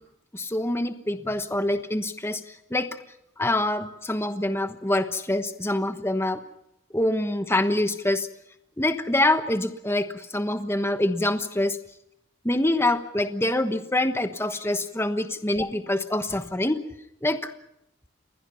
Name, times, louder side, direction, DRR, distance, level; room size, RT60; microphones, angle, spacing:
voice 1, 0.3-2.4 2.7-3.0 3.4-6.4 6.9-8.3 8.8-11.8 12.4-16.8 17.2-17.4, left 1 dB, 15° left, 8 dB, 1.2 m, -25 dB
28.5 x 21.5 x 5.7 m, 0.81 s
head